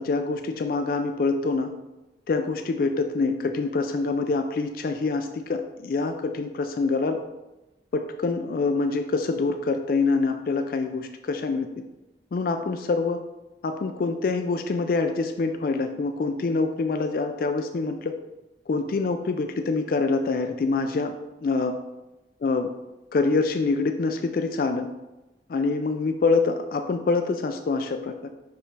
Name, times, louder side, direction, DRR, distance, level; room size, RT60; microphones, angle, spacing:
voice 1, 0.0-1.7 2.3-7.2 7.9-11.7 12.3-13.2 13.6-18.1 18.7-21.7 22.4-22.7 23.1-24.9 25.5-28.3, left 3 dB, 55° left, 6 dB, 0.3 m, -25 dB
5.7 x 5.1 x 3.3 m, 1.0 s
head